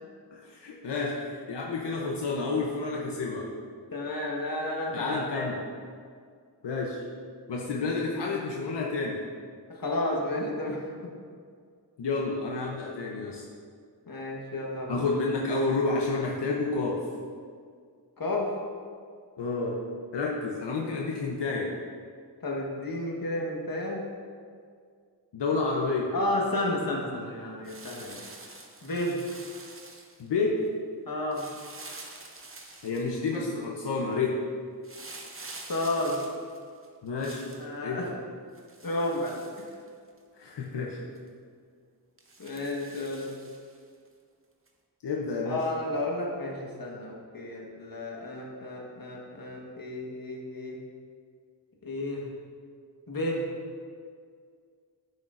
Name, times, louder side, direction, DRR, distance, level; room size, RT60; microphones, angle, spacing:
voice 1, 0.3-1.1 1.5-3.5 4.9-5.6 6.6-7.0 7.5-9.2 12.0-13.4 14.9-17.1 19.4-19.8 20.1-21.8 25.3-26.1 30.2-30.6 32.8-34.4 37.0-37.5 37.8-38.0 40.4-41.0 45.0-45.6, left 3 dB, 85° left, -2 dB, 0.8 m, -30 dB
voice 2, 3.9-5.5 9.7-10.9 14.1-15.0 18.2-18.5 22.4-24.0 26.1-28.2 28.8-29.2 31.1-31.5 35.7-36.3 37.6-38.1 38.8-39.4 42.4-43.3 45.4-50.8 51.8-52.3 53.1-53.5, left 1 dB, 55° left, -2 dB, 1.4 m, -32 dB
sound 1, 27.6-30.3 31.3-33.4 34.8-37.7 38.5-40.2 40.6-40.7 41.1-41.3 42.2-43.8 44.7-44.8, right 3 dB, 30° right, 0.8 m, -47 dB
10.5 x 6.4 x 2.5 m, 2.1 s
wide cardioid pair, 85°, 41 cm